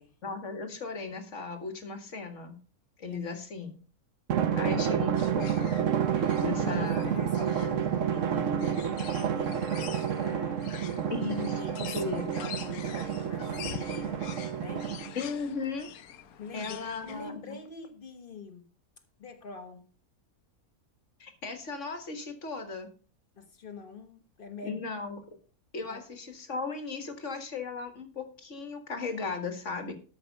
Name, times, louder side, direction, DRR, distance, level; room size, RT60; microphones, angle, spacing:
voice 1, 0.2-2.6 3.0-3.8 4.5-5.8 6.4-7.0 10.7-10.8 11.1-11.5 11.9-12.3 15.2-15.9 16.5-17.6 21.2-22.9 24.6-25.2 25.7-29.9, left 4 dB, 55° left, 2.0 m, -36 dB
Drum, 4.3-15.3, right 8 dB, 60° right, 1.1 m, -29 dB
sound 1, 5.2-17.3, left 10 dB, 80° left, 1.2 m, -46 dB
voice 2, 6.3-11.1 11.6-14.9 16.4-18.6 19.2-19.9 23.3-24.8 25.8-26.1, left 4 dB, 40° left, 1.5 m, -45 dB
13.0 x 5.7 x 5.3 m
omnidirectional pair, 1.5 m